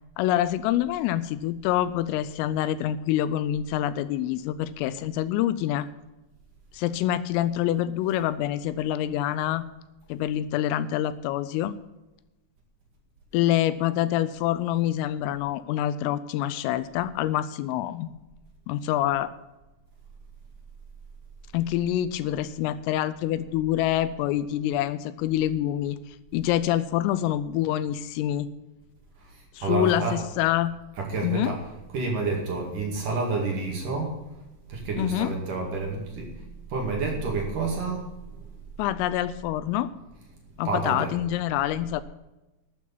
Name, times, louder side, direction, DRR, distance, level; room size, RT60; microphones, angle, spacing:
voice 1, 0.2-5.9 6.7-9.6 10.1-11.7 13.3-18.1 18.7-19.3 21.5-28.5 29.5-30.8 31.2-31.5 35.0-35.3 38.8-39.9 40.6-42.0, left 12 dB, 85° left, 15 dB, 3.1 m, -26 dB
voice 2, 29.2-30.1 31.0-31.6 31.9-34.1 34.7-36.3 36.7-38.5 40.6-41.1, right 3 dB, 50° right, -1 dB, 3.0 m, -29 dB
12.5 x 8.4 x 7.2 m, 1.0 s
omnidirectional pair, 6.0 m